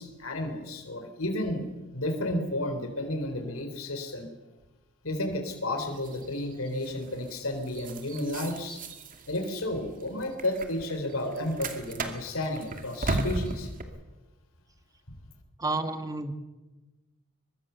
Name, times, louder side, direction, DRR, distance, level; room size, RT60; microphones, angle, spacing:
voice 1, 0.0-1.7 1.9-4.3 5.0-8.8 9.3-13.7 15.1-15.2, left 1 dB, 70° left, 6 dB, 3.6 m, -32 dB
sound 1, 5.8-13.8, right 2 dB, 40° right, 2.4 m, -37 dB
voice 2, 15.6-16.3, right 2 dB, 15° right, 8 dB, 1.4 m, -30 dB
23.0 x 22.5 x 7.0 m, 1.1 s
head